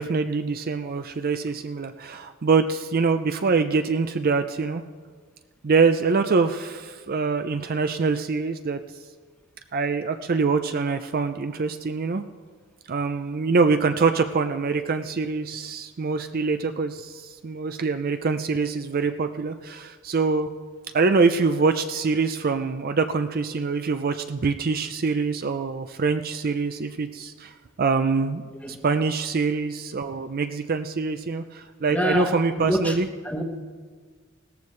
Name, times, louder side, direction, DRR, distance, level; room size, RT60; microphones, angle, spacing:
voice 1, 0.0-4.8 5.6-8.8 9.7-12.2 12.9-20.5 20.9-27.5 27.8-28.4 28.7-33.1, right 4 dB, 45° right, 8 dB, 0.5 m, -24 dB
voice 2, 31.9-33.0 33.2-33.4, equal, 5° left, 3 dB, 1.2 m, -26 dB
17.5 x 14.0 x 3.2 m, 1.5 s
head